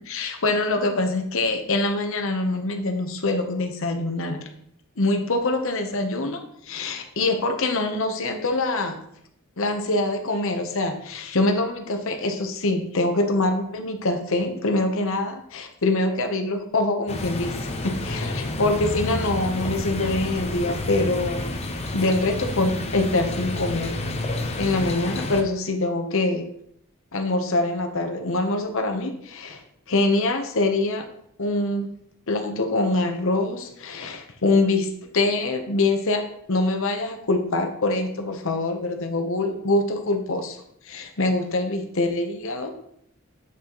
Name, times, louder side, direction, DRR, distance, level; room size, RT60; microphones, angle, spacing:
voice 1, 0.1-4.5 5.0-9.0 9.6-21.5 21.9-24.0 24.2-26.5 27.1-29.6 29.9-31.1 31.4-31.9 32.3-34.9 35.1-36.2 36.5-40.6 40.8-42.7, left 2 dB, 65° left, 5 dB, 0.9 m, -24 dB
sound 1, 17.1-25.4, left 2 dB, 30° left, 0.8 m, -30 dB
8.5 x 6.0 x 3.0 m, 0.70 s
head